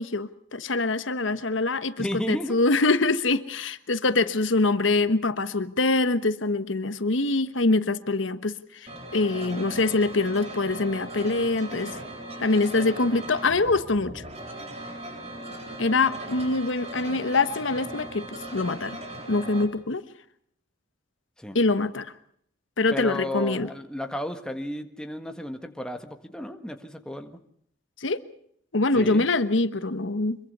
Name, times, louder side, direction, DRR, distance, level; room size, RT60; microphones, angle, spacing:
voice 1, 0.0-12.0 12.4-14.2 15.8-18.3 18.5-19.0 19.3-20.0 21.5-22.1 22.8-23.7 28.0-28.2 28.7-30.4, left 3 dB, 80° left, 12 dB, 1.2 m, -24 dB
voice 2, 2.0-2.6 21.4-21.6 22.9-27.4 28.9-29.3, left 1 dB, 5° left, 6 dB, 1.6 m, -33 dB
sound 1, 8.9-19.7, right 1 dB, 35° right, 4.0 m, -38 dB
25.0 x 23.0 x 5.5 m, 0.69 s
head